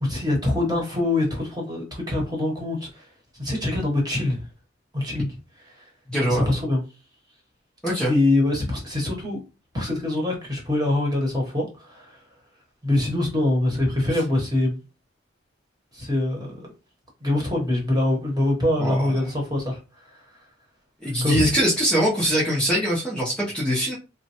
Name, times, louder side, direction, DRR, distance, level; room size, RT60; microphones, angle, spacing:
voice 1, 0.0-3.0 3.4-4.4 4.9-5.3 6.3-6.8 8.1-9.4 9.7-12.2 12.8-14.8 15.9-16.7 17.2-19.8 21.2-21.5, left 2 dB, 20° right, 1.0 m, -24 dB
voice 2, 6.1-6.5 7.8-8.1 18.8-19.3 21.0-24.0, equal, 5° left, 0.6 m, -23 dB
3.1 x 2.1 x 2.8 m
head